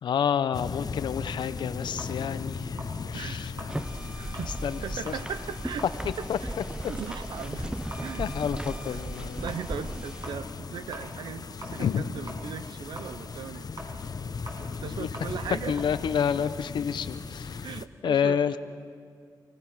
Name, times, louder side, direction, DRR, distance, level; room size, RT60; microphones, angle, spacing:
voice 1, 0.0-3.7 4.6-4.8 5.1-5.2 6.3-6.4 8.2-9.4 11.8-12.0 15.0-15.1 15.7-17.7 18.0-18.6, left 8 dB, 85° left, 13 dB, 0.7 m, -29 dB
sound 1, 0.5-17.9, left 5 dB, 60° left, 0.9 m, -38 dB
sound 2, 2.0-4.6 4.9-5.3 5.6-12.0 12.3-17.0, right 1 dB, 55° right, 6.4 m, -45 dB
voice 2, 3.1-3.5 4.1-4.5 4.8-5.9 6.2-6.5 6.9-8.3 8.9-9.0 9.4-13.7 14.8-15.8 17.6-18.6, right 7 dB, 90° right, 12 dB, 0.7 m, -38 dB
sound 3, 3.7-10.3, right 1 dB, 10° right, 0.6 m, -37 dB
28.5 x 16.0 x 6.1 m, 2.1 s
cardioid pair, 45°, 8 cm